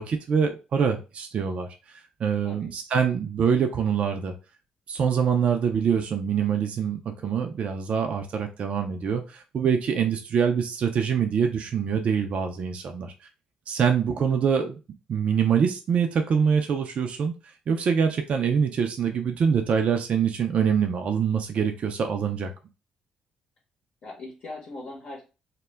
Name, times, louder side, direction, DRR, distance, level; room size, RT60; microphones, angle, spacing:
voice 1, 0.0-4.3 4.9-13.1 13.7-14.8 15.1-17.3 17.7-22.5, right 7 dB, 55° right, 0.4 m, -25 dB
voice 2, 14.1-14.4 24.0-25.2, left 2 dB, 60° left, 0.8 m, -40 dB
2.2 x 2.1 x 3.2 m
supercardioid pair, 60°, 3 cm